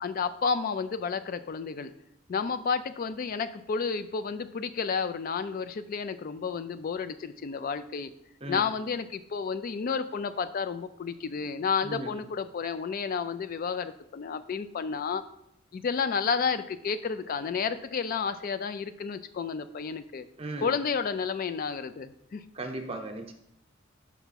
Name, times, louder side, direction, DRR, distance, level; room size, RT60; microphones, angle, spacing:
voice 1, 0.0-1.9 2.3-8.1 8.5-15.2 15.7-20.3 20.6-22.4, left 5 dB, 45° left, 12 dB, 0.3 m, -31 dB
voice 2, 20.4-20.7 22.5-23.3, right 2 dB, 30° right, 5 dB, 0.8 m, -36 dB
6.0 x 3.5 x 5.7 m, 0.79 s
head